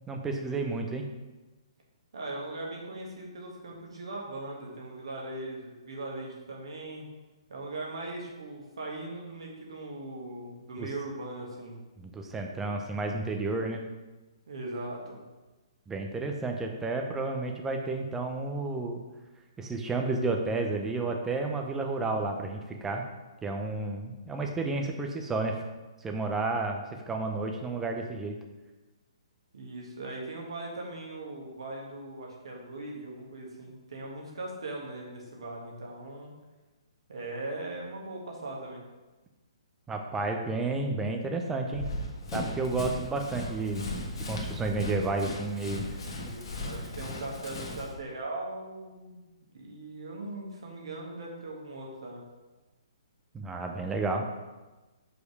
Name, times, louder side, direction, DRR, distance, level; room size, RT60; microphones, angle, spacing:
voice 1, 0.1-1.1 10.8-10.9 12.0-13.9 15.9-19.0 19.6-23.0 23.4-25.6 26.0-28.4 39.9-41.9 42.3-45.8 53.3-54.3, right 3 dB, 10° right, 3 dB, 0.7 m, -31 dB
voice 2, 2.1-7.1 7.5-11.8 14.5-15.2 29.5-36.3 37.1-38.8 46.0-49.2 49.5-52.2, right 2 dB, 60° right, -1 dB, 1.7 m, -39 dB
Run, 41.7-47.9, left 1 dB, 55° left, 1.3 m, -37 dB
5.2 x 4.8 x 4.8 m, 1.2 s
figure-of-eight pair, 125°, 3 cm